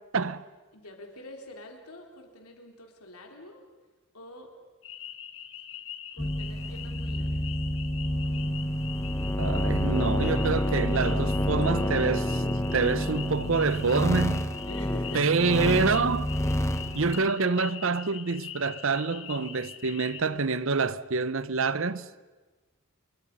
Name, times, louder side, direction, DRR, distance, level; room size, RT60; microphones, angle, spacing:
voice 1, 0.1-0.4 9.4-12.4 12.7-14.5 15.1-16.3 16.9-22.1, right 4 dB, 60° right, 0.8 m, -27 dB
voice 2, 0.7-3.7 4.1-4.5 6.1-7.4 14.6-15.4, left 2 dB, 90° left, 3.9 m, -46 dB
sound 1, 4.8-20.2, left 9 dB, 60° left, 1.8 m, -43 dB
sound 2, 6.2-17.3, equal, 15° left, 0.9 m, -28 dB
28.0 x 22.5 x 5.5 m
head